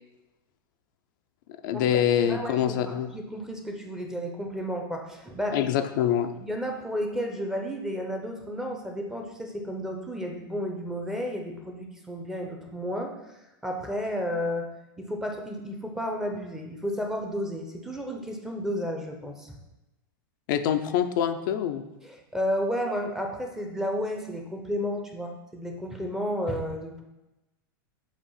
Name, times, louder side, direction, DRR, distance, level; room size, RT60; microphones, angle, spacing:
voice 1, 1.6-3.1 5.5-6.3 20.5-21.8, left 9 dB, 60° left, 7 dB, 0.5 m, -25 dB
voice 2, 2.3-5.7 6.4-13.4 13.6-14.7 15.0-19.6 22.0-27.0, equal, 5° right, 2 dB, 0.7 m, -32 dB
7.2 x 2.5 x 5.5 m, 0.99 s
hypercardioid pair, 130°, 12 cm